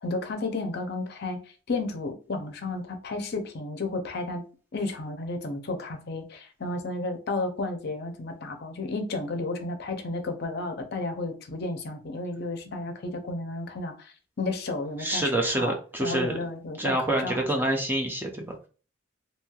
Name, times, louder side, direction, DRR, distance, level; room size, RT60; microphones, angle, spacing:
voice 1, 0.0-1.4 1.7-4.4 4.7-17.4, left 2 dB, 50° left, 0.5 m, -32 dB
voice 2, 15.0-16.4 16.8-18.7, right 1 dB, 10° right, 0.4 m, -27 dB
3.0 x 2.7 x 2.3 m
head